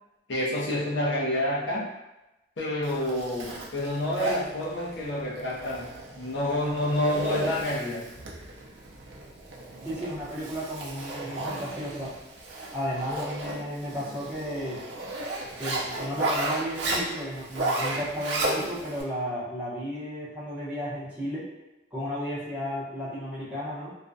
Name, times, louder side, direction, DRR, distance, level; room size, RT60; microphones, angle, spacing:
voice 1, 0.3-1.9 2.6-8.1, left 1 dB, 70° left, -5 dB, 0.6 m, -28 dB
Zipper (clothing), 2.8-19.0, right 2 dB, 75° right, 0.5 m, -34 dB
voice 2, 9.8-12.1 12.7-14.8 15.6-21.5 21.9-23.9, equal, 10° right, -11 dB, 0.8 m, -33 dB
2.4 x 2.1 x 2.5 m, 0.98 s
head